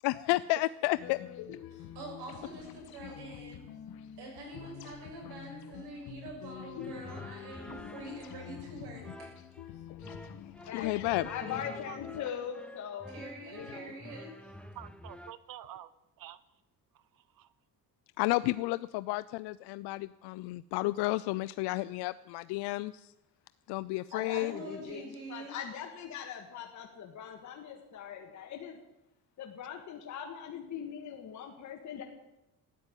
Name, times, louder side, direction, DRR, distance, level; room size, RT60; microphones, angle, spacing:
voice 1, 0.0-1.2 10.7-11.3 18.2-22.9 23.7-24.5, left 20 dB, 85° left, 15 dB, 0.5 m, -31 dB
sound 1, 0.9-12.2, left 10 dB, 65° left, 1.1 m, -47 dB
voice 2, 1.8-3.6 4.2-9.0 13.1-14.3 24.3-25.5, right 2 dB, 75° right, 0 dB, 7.1 m, -45 dB
sound 2, 6.8-15.3, left 1 dB, 5° left, 0.4 m, -49 dB
voice 3, 11.2-13.9 24.1-28.8 29.4-32.0, left 8 dB, 45° left, 1 dB, 1.7 m, -41 dB
voice 4, 14.7-15.9 16.2-16.4 16.9-17.5, right 12 dB, 55° right, 16 dB, 0.9 m, -48 dB
13.5 x 9.7 x 9.0 m, 0.94 s
cardioid pair, 150°, 39 cm